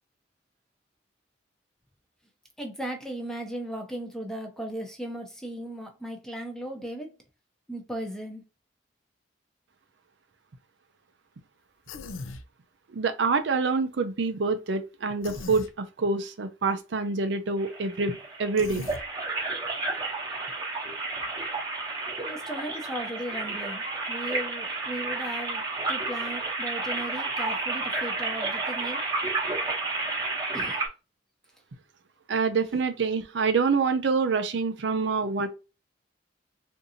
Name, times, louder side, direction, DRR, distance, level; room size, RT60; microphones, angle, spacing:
voice 1, 2.6-7.1 7.7-8.4 22.2-25.6 25.9-29.1 30.5-30.8, right 1 dB, 5° left, 0.6 m, -36 dB
Human voice, 11.9-12.4 15.2-15.7 18.6-19.0, left 3 dB, 90° left, 0.5 m, -39 dB
voice 2, 12.9-18.9 32.3-35.5, right 4 dB, 65° right, 0.5 m, -26 dB
sound 1, 17.6-30.9, right 3 dB, 20° right, 0.9 m, -31 dB
3.8 x 2.6 x 2.7 m
head